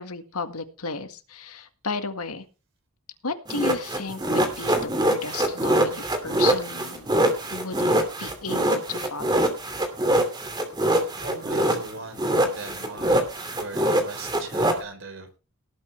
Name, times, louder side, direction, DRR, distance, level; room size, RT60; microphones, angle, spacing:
voice 1, 0.0-2.4 3.2-7.1 7.5-9.4, left 4 dB, 85° left, 8 dB, 1.9 m, -33 dB
sound 1, 3.5-11.9 12.2-14.8, right 1 dB, 20° right, 2.7 m, -23 dB
voice 2, 11.2-13.2 13.5-15.4, right 3 dB, 55° right, 7 dB, 3.9 m, -39 dB
18.5 x 8.7 x 3.4 m, 0.32 s
head